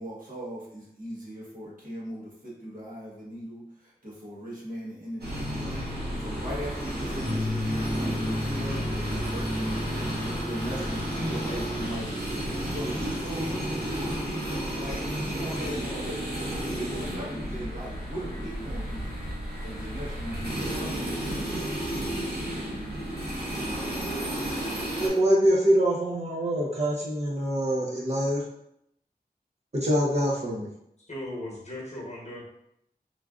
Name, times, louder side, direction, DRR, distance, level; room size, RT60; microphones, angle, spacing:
voice 1, 0.0-10.0 10.4-12.1 12.7-16.3 16.6-19.1 19.6-21.0, equal, 60° right, -6 dB, 1.1 m, -38 dB
sound 1, 5.2-25.1, right 1 dB, 85° right, 0.8 m, -32 dB
sound 2, 7.2-13.9, left 1 dB, ahead, 0.4 m, -35 dB
voice 2, 25.0-28.4 29.7-30.7, right 1 dB, 40° right, -5 dB, 0.6 m, -24 dB
voice 3, 31.1-32.5, left 1 dB, 45° left, -5 dB, 1.0 m, -37 dB
3.1 x 2.4 x 2.3 m, 0.77 s
wide cardioid pair, 65°, 16 cm